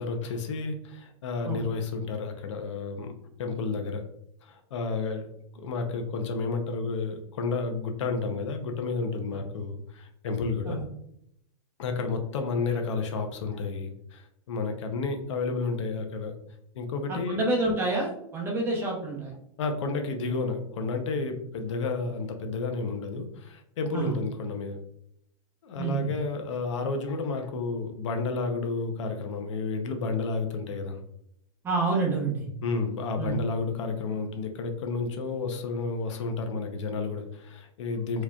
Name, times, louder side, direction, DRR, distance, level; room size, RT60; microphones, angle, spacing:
voice 1, 0.0-3.1 3.4-4.0 4.4-5.3 5.5-10.8 11.8-16.3 16.7-17.4 19.6-24.8 25.6-31.0 32.6-38.2, left 4 dB, 60° left, 5 dB, 0.7 m, -31 dB
voice 2, 17.1-19.3 23.9-24.2 25.8-26.1 31.6-32.4 33.2-33.4, right 3 dB, 15° right, -2 dB, 0.8 m, -28 dB
4.6 x 2.9 x 2.3 m, 0.74 s
supercardioid pair, 160°, 17 cm